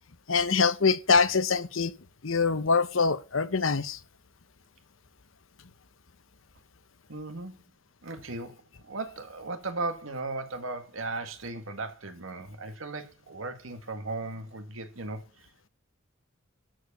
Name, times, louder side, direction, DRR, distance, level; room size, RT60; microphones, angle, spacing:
voice 1, 0.3-1.9 2.2-4.0, left 5 dB, 85° left, 1.0 m, -24 dB
voice 2, 7.1-7.6 8.0-15.5, right 3 dB, 85° right, 1.8 m, -37 dB
12.5 x 4.8 x 6.7 m
head